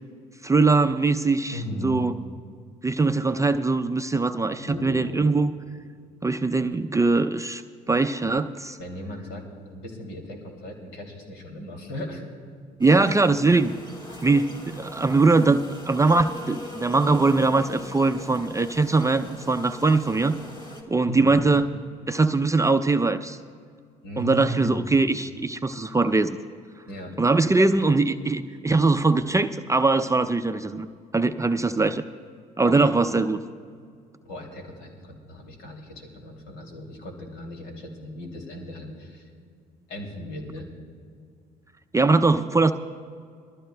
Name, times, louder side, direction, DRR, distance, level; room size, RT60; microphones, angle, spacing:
voice 1, 0.4-2.1 2.8-5.5 6.2-7.6 7.9-8.8 12.8-13.7 14.2-15.6 15.9-20.4 20.9-21.6 22.1-23.4 24.2-26.4 27.2-30.9 31.1-32.0 32.6-33.4 41.9-42.7, right 3 dB, 15° right, 8 dB, 0.5 m, -21 dB
voice 2, 1.5-2.0 4.6-5.3 8.8-12.2 21.1-21.5 24.0-24.9 26.9-27.1 32.6-32.9 34.2-39.3 39.9-40.7, left 1 dB, 75° left, 1 dB, 2.7 m, -37 dB
sound 1, 12.8-20.8, equal, 25° left, 2.8 m, -41 dB
22.5 x 14.0 x 2.2 m, 2.2 s
supercardioid pair, 65°, 20 cm